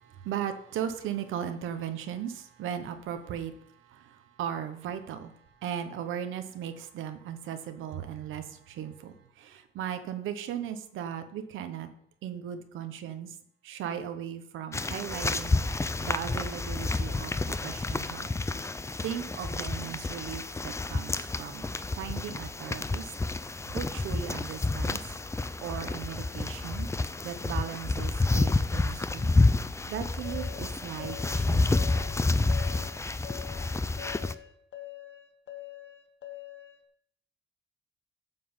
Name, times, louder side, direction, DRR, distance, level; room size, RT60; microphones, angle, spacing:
voice 1, 0.0-11.9 12.2-13.4 13.6-18.3 19.0-23.1 23.4-25.1 25.6-26.9 27.2-29.3 29.9-31.9, right 9 dB, 85° right, 9 dB, 1.0 m, -37 dB
sound 1, 14.7-34.3, left 3 dB, 15° left, 0.5 m, -29 dB
sound 2, 30.2-36.8, left 15 dB, 65° left, 1.4 m, -44 dB
9.2 x 3.8 x 7.2 m, 0.66 s
cardioid pair, 90°, 20 cm